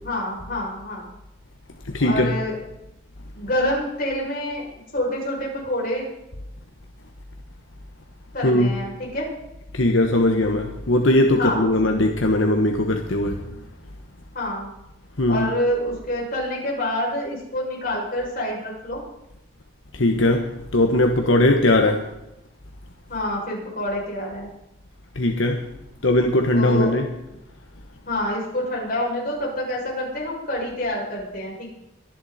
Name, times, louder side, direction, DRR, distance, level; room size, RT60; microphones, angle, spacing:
voice 1, 0.0-1.1 2.0-2.5 3.3-4.7 4.9-6.1 8.3-9.3 11.4-11.7 13.4-13.6 14.3-14.7 15.3-19.0 23.1-24.5 26.5-27.0 28.0-31.7, left 1 dB, 45° left, -3 dB, 6.6 m, -27 dB
voice 2, 1.9-2.4 8.4-8.8 9.7-13.5 15.2-15.5 19.9-22.0 25.1-25.7 26.0-27.1, left 1 dB, 80° left, 4 dB, 1.3 m, -19 dB
24.0 x 10.5 x 4.3 m, 0.92 s
head